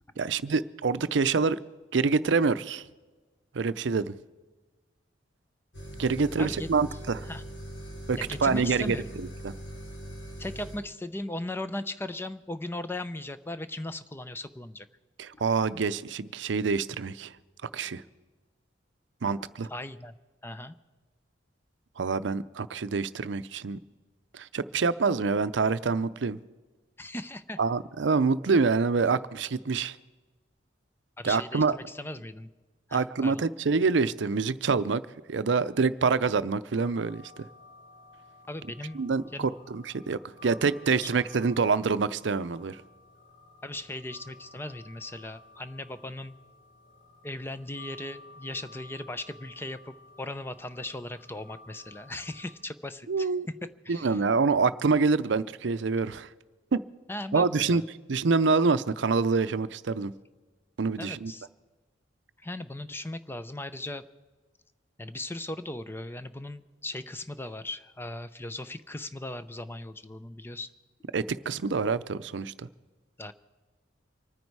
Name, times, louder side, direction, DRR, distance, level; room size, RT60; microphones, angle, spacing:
voice 1, 0.2-1.6 1.9-2.8 3.5-4.1 6.0-7.3 8.1-9.5 15.2-17.3 17.7-18.0 19.2-19.7 22.0-23.8 24.3-26.4 27.6-30.0 31.2-31.8 32.9-35.0 35.3-37.2 38.9-42.8 53.1-53.5 53.9-56.3 56.7-56.8 57.3-57.8 58.1-60.1 60.8-61.3 71.1-72.7, right 4 dB, 70° right, 15 dB, 0.5 m, -26 dB
sound 1, 5.7-10.8, equal, 75° left, 4.0 m, -41 dB
voice 2, 8.2-9.2 10.4-14.9 19.7-20.1 20.4-20.7 27.0-27.6 31.2-32.5 32.9-33.4 38.5-39.0 39.3-39.5 41.0-41.1 43.6-46.3 47.2-53.3 53.8-54.2 57.1-57.8 61.0-61.5 62.4-64.1 65.0-70.7 73.2-73.3, left 1 dB, 10° left, 12 dB, 0.5 m, -38 dB
sound 2, 36.8-52.5, left 2 dB, 90° left, 5.6 m, -54 dB
25.5 x 9.6 x 4.7 m, 1.3 s
head